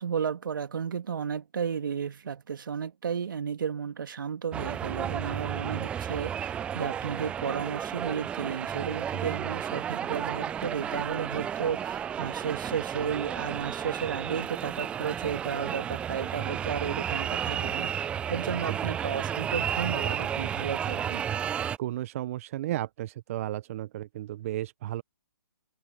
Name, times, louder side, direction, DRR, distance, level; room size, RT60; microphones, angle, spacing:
voice 1, 0.0-21.2, right 7 dB, 65° right, 2.1 m, -33 dB
sound 1, 4.5-21.8, right 9 dB, 10° right, 0.4 m, -32 dB
voice 2, 21.8-25.0, right 14 dB, 40° right, 0.7 m, -34 dB
open air
hypercardioid pair, 140°, 12 cm